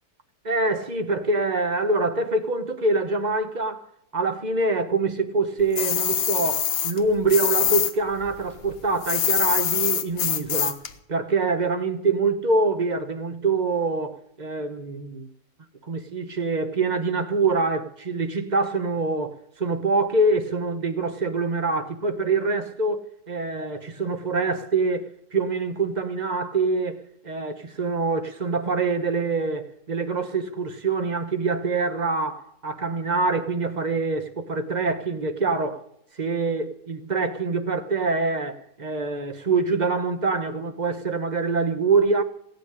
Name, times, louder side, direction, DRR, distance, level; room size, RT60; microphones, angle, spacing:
voice 1, 0.4-3.8 4.1-10.8 11.1-15.3 15.9-35.9 36.2-42.2, right 3 dB, 30° right, 1.0 m, -25 dB
sound 1, 5.7-7.9 8.2-10.9, left 9 dB, 85° left, 1.6 m, -24 dB
16.5 x 6.6 x 9.9 m
omnidirectional pair, 1.8 m